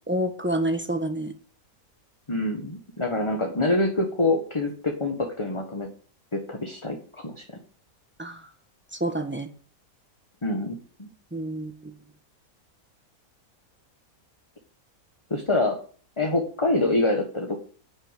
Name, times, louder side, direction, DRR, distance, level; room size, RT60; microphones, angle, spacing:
voice 1, 0.1-1.3 8.2-8.4 9.0-9.5 11.3-11.9, right 1 dB, 10° right, 6 dB, 1.4 m, -28 dB
voice 2, 2.3-5.9 6.3-7.4 10.4-11.1 15.3-15.8 16.2-17.6, left 2 dB, 20° left, 3 dB, 1.5 m, -26 dB
10.5 x 6.8 x 9.1 m, 0.44 s
omnidirectional pair, 1.6 m